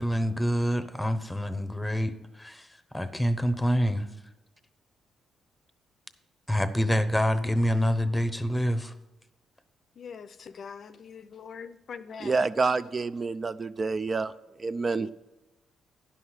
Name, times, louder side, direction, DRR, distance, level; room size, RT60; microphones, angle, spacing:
voice 1, 0.0-4.1 6.5-8.9, equal, 5° left, 0.8 m, -27 dB
voice 2, 10.0-12.3 14.9-15.1, left 6 dB, 55° left, 0.5 m, -43 dB
voice 3, 12.2-14.3 14.6-15.1, right 4 dB, 35° right, 0.3 m, -28 dB
11.0 x 5.7 x 6.3 m
cardioid pair, 90°, 0 cm